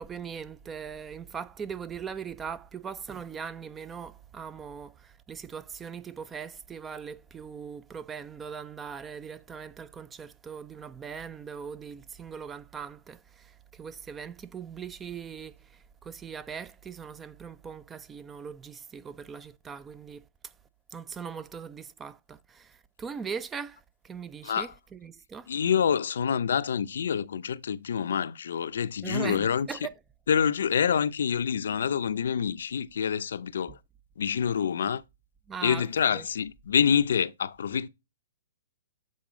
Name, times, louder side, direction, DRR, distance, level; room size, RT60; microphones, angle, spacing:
voice 1, 0.0-20.5 20.9-25.5 29.0-29.9 35.5-36.2, right 6 dB, 15° right, 0.3 m, -40 dB
voice 2, 25.5-29.7 30.3-33.8 34.2-35.0 35.6-37.9, left 7 dB, 70° left, 0.5 m, -27 dB
7.5 x 3.9 x 3.7 m
hypercardioid pair, 130°, 0 cm